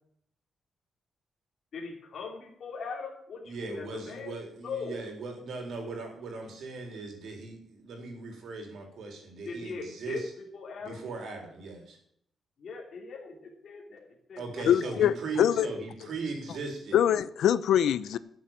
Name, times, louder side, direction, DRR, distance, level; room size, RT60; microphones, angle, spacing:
voice 1, 1.7-4.3 4.6-5.0 9.4-10.2 10.5-11.0 12.6-14.0 14.3-15.1, left 4 dB, 50° left, 3.0 m, -40 dB
voice 2, 3.4-10.3 10.8-12.0 14.4-17.0, right 3 dB, 65° right, 3.9 m, -38 dB
voice 3, 14.7-15.7 16.9-18.2, left 10 dB, 90° left, 0.7 m, -24 dB
13.5 x 7.3 x 7.4 m
wide cardioid pair, 175°, 0 cm